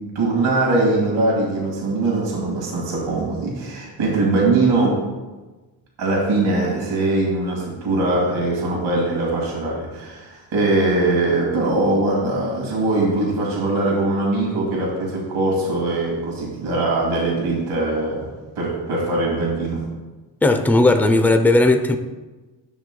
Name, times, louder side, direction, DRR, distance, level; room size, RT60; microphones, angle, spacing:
voice 1, 0.2-5.0 6.0-18.3 18.6-19.8, right 2 dB, 80° right, -3 dB, 2.2 m, -21 dB
voice 2, 20.4-22.0, left 2 dB, 5° left, 6 dB, 0.5 m, -16 dB
11.5 x 6.3 x 2.2 m, 1.2 s
cardioid pair, 85°, 47 cm